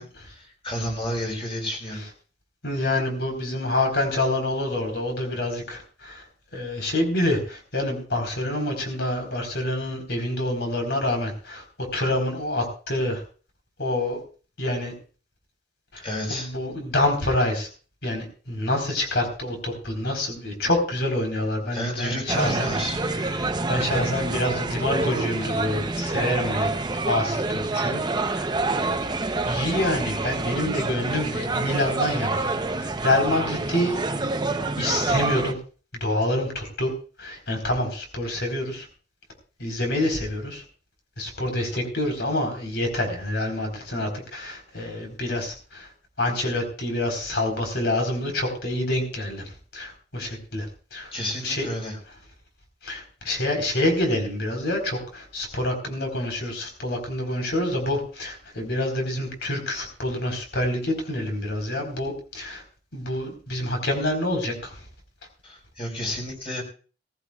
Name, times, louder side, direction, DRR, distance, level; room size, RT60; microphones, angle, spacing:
voice 1, 0.0-2.0 16.0-16.5 21.7-23.0 51.1-52.0 65.4-66.6, equal, 30° left, 1 dB, 4.5 m, -31 dB
voice 2, 2.6-6.2 6.5-13.2 13.8-14.2 14.6-14.9 15.9-16.0 16.3-17.7 18.0-22.7 23.0-23.4 23.6-26.7 27.1-29.1 29.4-34.0 34.8-35.6 36.0-36.9 37.2-38.9 39.6-40.6 41.2-45.9 46.2-51.1 51.4-51.7 52.8-62.6 62.9-64.8, left 1 dB, 70° left, 3 dB, 4.2 m, -27 dB
sound 1, 22.3-35.5, right 3 dB, 25° right, 0.7 m, -27 dB
18.5 x 15.0 x 2.4 m, 0.38 s
head